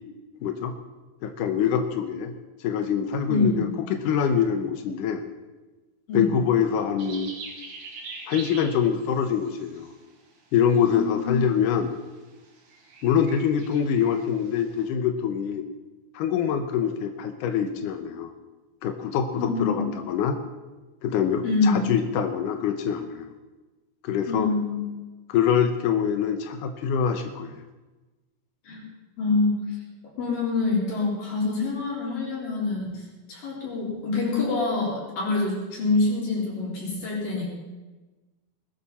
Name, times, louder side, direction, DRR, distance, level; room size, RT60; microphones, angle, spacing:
voice 1, 0.4-0.7 1.2-2.3 2.6-5.2 6.1-7.3 8.3-9.9 10.5-11.9 13.0-15.6 16.1-18.3 18.8-20.4 21.0-23.3 24.0-24.5 25.3-27.6, left 8 dB, 85° left, 7 dB, 1.8 m, -24 dB
voice 2, 3.3-3.6 6.1-6.3 10.8-11.3 19.4-19.8 21.4-21.8 24.3-24.8 28.6-28.8 29.2-29.8 30.2-37.5, left 3 dB, 55° left, -5 dB, 5.9 m, -26 dB
sound 1, 7.0-10.2 10.6-11.1 11.4-11.8 12.0-14.9, right 3 dB, 65° right, 4.0 m, -43 dB
20.0 x 13.5 x 4.3 m, 1.2 s
omnidirectional pair, 5.0 m